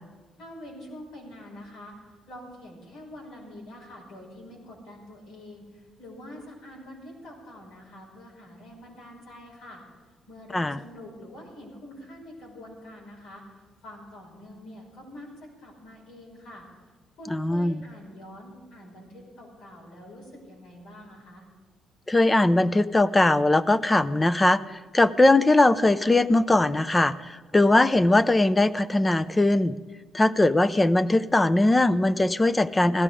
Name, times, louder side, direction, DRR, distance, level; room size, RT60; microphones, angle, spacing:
voice 1, 0.4-1.9 2.3-9.8 10.3-15.3 15.6-16.7 17.2-21.5, left 1 dB, 85° left, -3 dB, 5.9 m, -45 dB
voice 2, 17.3-17.8 22.1-29.8 30.1-33.0, left 2 dB, 20° left, 14 dB, 0.5 m, -20 dB
16.5 x 13.0 x 5.0 m, 1.4 s
cardioid pair, 90°, 0 cm